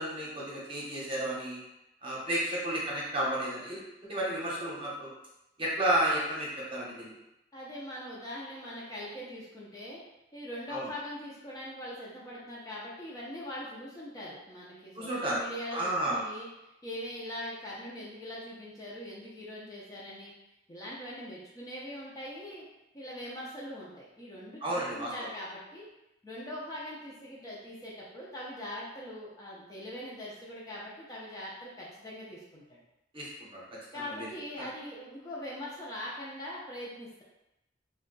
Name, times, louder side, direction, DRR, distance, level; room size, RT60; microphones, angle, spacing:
voice 1, 0.0-1.6 2.0-3.8 4.1-5.1 5.6-7.1 10.7-10.9 15.0-15.4 15.7-16.2 24.6-25.1 33.1-33.6 33.9-34.3 34.6-34.7, right 1 dB, 30° right, -5 dB, 0.9 m, -32 dB
voice 2, 7.5-10.0 10.3-16.5 16.8-20.3 20.7-22.6 22.9-25.9 26.2-32.8 33.9-37.2, left 1 dB, 20° left, -6 dB, 0.6 m, -42 dB
2.7 x 2.3 x 3.9 m, 0.91 s
head